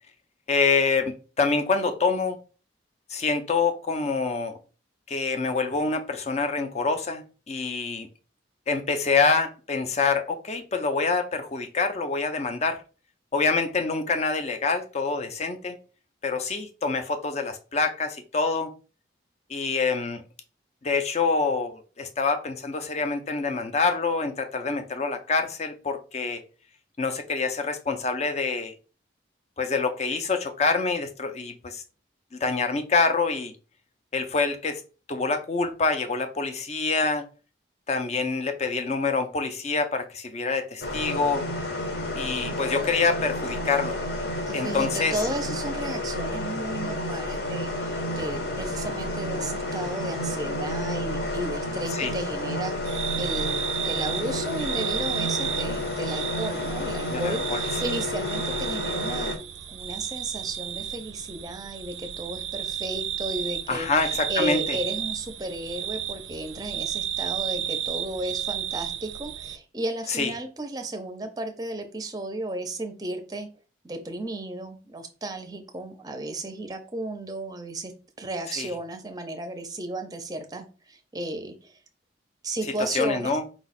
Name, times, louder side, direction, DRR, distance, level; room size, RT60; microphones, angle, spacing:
voice 1, 0.5-2.4 3.1-4.6 5.1-8.1 8.7-12.8 13.3-15.8 16.2-18.7 19.5-20.2 20.8-26.4 27.0-28.7 29.6-31.8 32.3-33.5 34.1-34.8 35.1-37.3 37.9-41.5 42.1-44.0 44.5-45.2 51.9-52.1 57.1-57.8 63.7-64.8 70.1-70.3 78.6-78.7 82.9-83.4, left 4 dB, 35° left, 0.5 m, -26 dB
sound 1, 40.8-59.4, left 1 dB, 55° left, 0.9 m, -30 dB
voice 2, 44.5-59.3 59.7-73.5 73.8-77.9 78.2-81.8 82.4-83.4, right 1 dB, 20° right, 0.6 m, -34 dB
sound 2, 52.8-69.6, right 10 dB, 80° right, 0.4 m, -33 dB
4.8 x 2.3 x 4.1 m
head